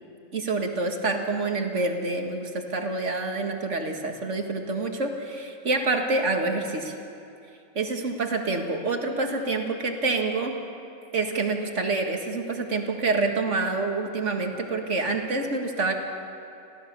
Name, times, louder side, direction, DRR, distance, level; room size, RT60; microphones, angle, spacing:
voice 1, 0.3-7.0 7.8-10.6 11.1-15.9, right 3 dB, 65° right, 3 dB, 2.1 m, -27 dB
27.5 x 16.5 x 6.9 m, 2.7 s
omnidirectional pair, 1.3 m